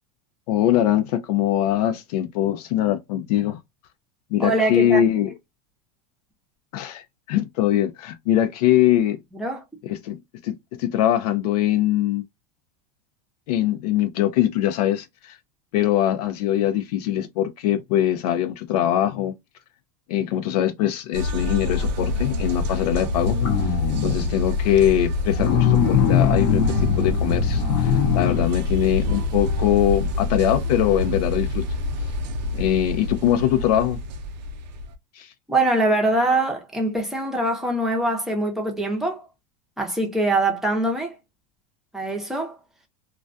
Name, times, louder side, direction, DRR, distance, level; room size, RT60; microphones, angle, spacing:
voice 1, 0.5-3.6 4.3-5.3 6.7-9.2 9.8-12.2 13.5-15.4 15.7-19.3 20.1-23.4 23.9-31.7 32.5-34.0 35.1-35.3, left 11 dB, 65° left, 0.4 m, -22 dB
voice 2, 4.4-5.0 9.3-9.6 35.5-39.3 39.8-41.2 41.9-42.6, right 2 dB, ahead, 0.6 m, -23 dB
sound 1, 21.1-34.9, left 2 dB, 85° right, 0.6 m, -26 dB
sound 2, 23.1-24.4 25.3-28.5 29.0-29.1, left 9 dB, 40° left, 0.7 m, -22 dB
2.2 x 2.2 x 2.4 m
supercardioid pair, 150°, 21 cm